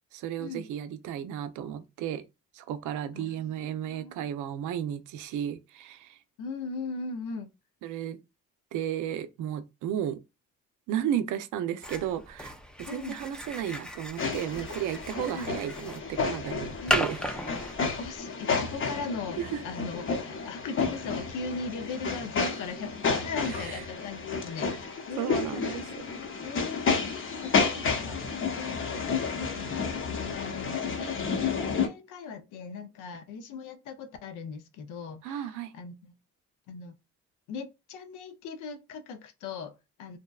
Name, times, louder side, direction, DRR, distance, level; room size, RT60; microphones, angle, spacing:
voice 1, 0.1-2.2 2.5-6.2 7.8-8.2 8.7-10.2 10.9-12.5 12.8-17.2 19.4-19.6 23.6-23.8 25.2-25.8 35.2-35.7, right 10 dB, 80° right, 0.5 m, -33 dB
voice 2, 3.1-4.3 6.4-7.5 12.9-13.2 15.3-15.6 16.8-17.0 18.0-25.8 26.4-29.0 29.4-36.1 36.7-36.9 37.5-40.2, left 4 dB, 90° left, 0.5 m, -39 dB
sound 1, 11.8-18.2, left 1 dB, 5° left, 0.3 m, -36 dB
sound 2, 14.2-31.9, left 5 dB, 45° left, 0.6 m, -31 dB
2.7 x 2.1 x 2.3 m
cardioid pair, 90°, 30 cm